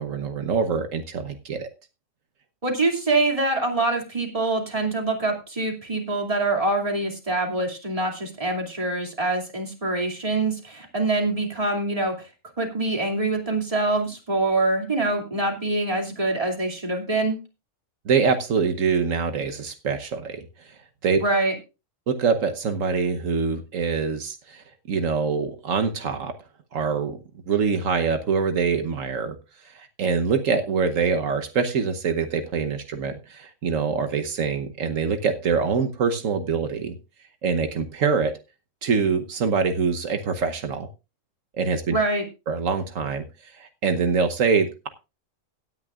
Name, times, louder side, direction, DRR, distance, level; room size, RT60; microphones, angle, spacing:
voice 1, 0.0-1.7 18.0-21.2 22.1-26.3 26.7-27.2 27.5-29.3 29.6-37.0 37.4-38.3 38.8-40.9 41.6-42.0 42.5-44.9, right 5 dB, 80° right, 7 dB, 1.4 m, -24 dB
voice 2, 2.6-12.3 12.6-17.4 21.2-21.5 41.9-42.2, right 2 dB, 25° right, 2 dB, 2.7 m, -25 dB
17.5 x 9.7 x 2.4 m, 0.28 s
omnidirectional pair, 1.3 m